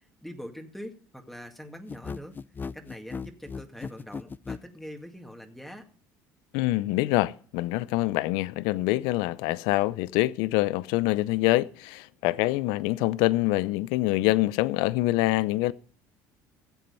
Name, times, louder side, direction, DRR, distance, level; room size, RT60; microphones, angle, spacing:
voice 1, 0.2-2.4 2.7-5.9, equal, 5° left, 2.1 m, -43 dB
sound 1, 1.9-4.7, left 5 dB, 25° left, 0.5 m, -36 dB
voice 2, 6.5-15.7, left 18 dB, 80° left, 0.5 m, -25 dB
15.0 x 7.7 x 5.4 m
supercardioid pair, 80°, 8 cm